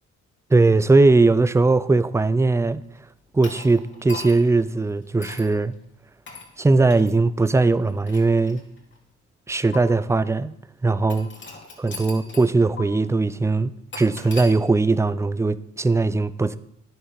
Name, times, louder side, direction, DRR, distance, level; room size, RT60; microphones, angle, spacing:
voice 1, 0.5-2.8 3.3-5.7 6.6-8.6 9.5-10.5 10.8-11.3 11.8-16.6, right 3 dB, 10° right, 0.4 m, -19 dB
sound 1, 3.4-4.6 5.2-5.5 6.3-6.5 6.9-7.1 7.8-9.0 9.7-9.8 11.1-12.5 12.8-12.9 13.9-14.5, left 3 dB, 40° left, 2.6 m, -39 dB
9.9 x 7.1 x 5.2 m
cardioid pair, 90°, 30 cm